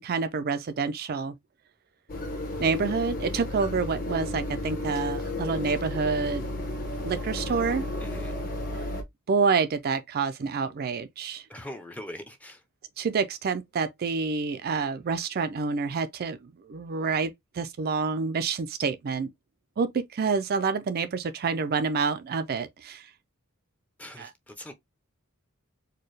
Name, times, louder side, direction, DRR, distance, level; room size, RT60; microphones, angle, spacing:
voice 1, 0.0-1.4 2.6-6.4 7.0-7.9 9.3-11.4 13.0-19.3 19.8-23.1 24.2-24.3, right 5 dB, 45° right, 0.4 m, -28 dB
sound 1, 2.1-9.0, left 1 dB, 40° left, 1.1 m, -33 dB
voice 2, 8.0-8.3 11.5-12.6 24.0-24.7, left 1 dB, 5° left, 0.6 m, -41 dB
4.4 x 2.2 x 3.2 m
head